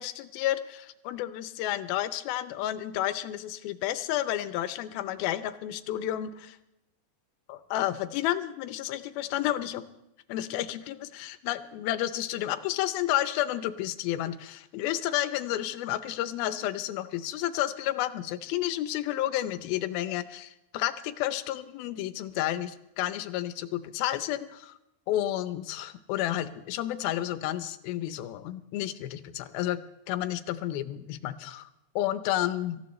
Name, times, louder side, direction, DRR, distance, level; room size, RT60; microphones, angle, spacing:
voice 1, 0.0-6.6 7.5-9.9 10.3-24.8 25.1-29.8 30.1-31.7 32.0-32.8, left 13 dB, 85° left, 12 dB, 2.7 m, -31 dB
25.5 x 14.5 x 3.2 m, 0.87 s
omnidirectional pair, 4.2 m